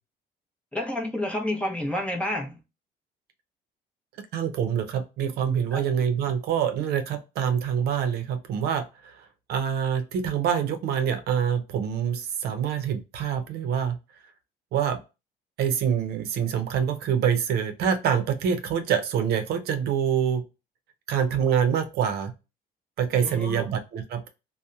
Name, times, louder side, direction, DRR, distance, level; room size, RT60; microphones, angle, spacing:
voice 1, 0.7-2.6 5.7-5.8 23.2-23.7, left 1 dB, 5° left, 0.7 m, -29 dB
voice 2, 4.3-9.1 9.5-14.0 14.7-15.0 15.6-20.4 21.1-22.3 23.0-24.3, right 8 dB, 70° right, 0.6 m, -26 dB
2.7 x 2.1 x 2.3 m
cardioid pair, 110°, 17 cm